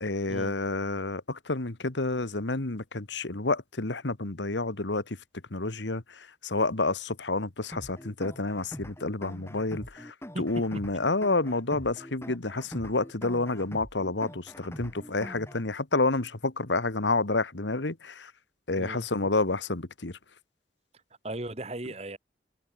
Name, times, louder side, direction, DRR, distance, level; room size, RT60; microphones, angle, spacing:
voice 1, 0.0-5.2 5.5-18.3 18.7-20.1, left 2 dB, 80° left, 1.7 m, -29 dB
sound 1, 7.7-15.7, equal, 15° left, 1.8 m, -43 dB
voice 2, 18.8-19.1 21.2-22.2, right 1 dB, 35° right, 1.7 m, -36 dB
head